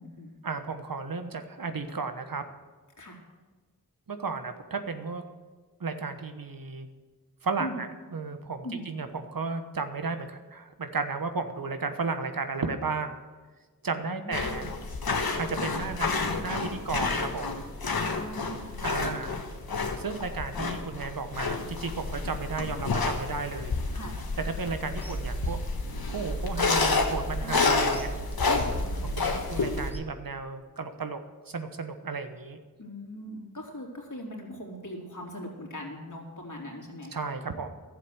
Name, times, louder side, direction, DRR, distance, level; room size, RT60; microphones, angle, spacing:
voice 1, 0.4-2.4 4.1-5.2 5.8-6.9 7.4-13.2 13.8-14.7 15.4-16.1 16.4-17.7 18.8-19.4 20.0-23.7 24.6-25.6 26.1-28.1 29.0-31.2 31.5-32.6 37.1-37.7, right 4 dB, 65° right, 8 dB, 1.2 m, -34 dB
voice 2, 13.9-14.6 18.1-18.8 23.9-24.2 27.4-28.0 28.5-29.3 32.8-37.2, left 1 dB, 55° left, -1 dB, 3.2 m, -40 dB
sound 1, 14.3-29.9, left 3 dB, 75° left, 1.4 m, -30 dB
Bird vocalization bird call bird song / Telephone, 25.0-30.0, right 2 dB, 5° right, 1.3 m, -37 dB
12.0 x 7.6 x 8.0 m, 1.4 s
wide cardioid pair, 45°, 36 cm